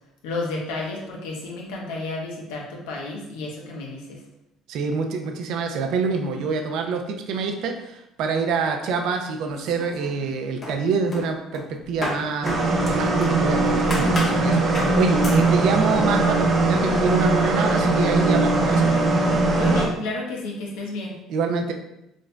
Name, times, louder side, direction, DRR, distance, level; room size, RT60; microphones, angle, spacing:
voice 1, 0.2-4.2 19.5-21.2, left 2 dB, 85° left, -1 dB, 0.9 m, -31 dB
voice 2, 4.7-12.6 12.9-18.9 21.3-21.7, right 4 dB, 70° right, 4 dB, 0.5 m, -26 dB
sound 1, 9.5-10.3 10.6-13.4 13.9-14.4 14.7-15.0 15.2-15.5, left 1 dB, 35° left, 1.2 m, -32 dB
sound 2, 12.4-19.9, right 2 dB, 40° right, 0.8 m, -20 dB
5.1 x 2.6 x 2.2 m, 0.86 s
supercardioid pair, 85°, 0 cm